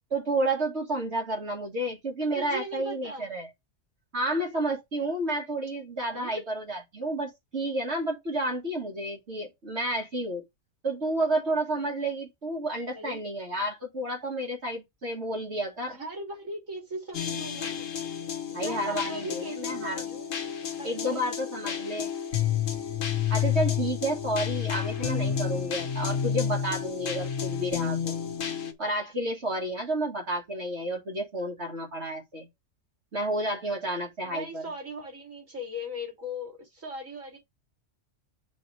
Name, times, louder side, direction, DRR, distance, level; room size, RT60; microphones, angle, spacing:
voice 1, 0.1-3.5 4.1-10.4 10.8-16.0 18.5-20.1 20.8-22.1 23.3-28.2 28.8-32.5 33.1-34.6, right 1 dB, 60° right, 2.4 m, -31 dB
voice 2, 2.3-3.3 6.1-6.4 12.9-13.2 15.9-17.9 18.5-20.4 20.8-21.5 34.2-37.4, equal, 90° right, 3.8 m, -39 dB
sound 1, 17.1-28.7, left 8 dB, 80° left, 1.6 m, -30 dB
7.3 x 6.2 x 3.4 m
omnidirectional pair, 1.3 m